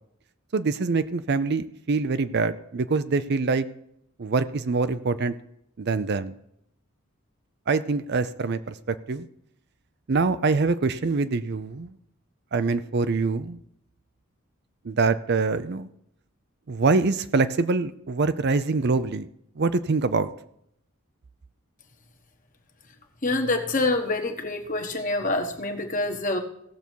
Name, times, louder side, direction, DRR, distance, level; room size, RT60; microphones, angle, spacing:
voice 1, 0.5-3.7 4.2-5.3 5.8-6.3 7.7-9.3 10.1-11.9 12.5-13.6 14.8-15.9 16.7-19.3 19.6-20.3, right 4 dB, 50° right, 12 dB, 0.5 m, -24 dB
voice 2, 23.2-26.4, left 2 dB, 35° left, 5 dB, 1.3 m, -26 dB
17.0 x 6.9 x 4.6 m, 0.73 s
head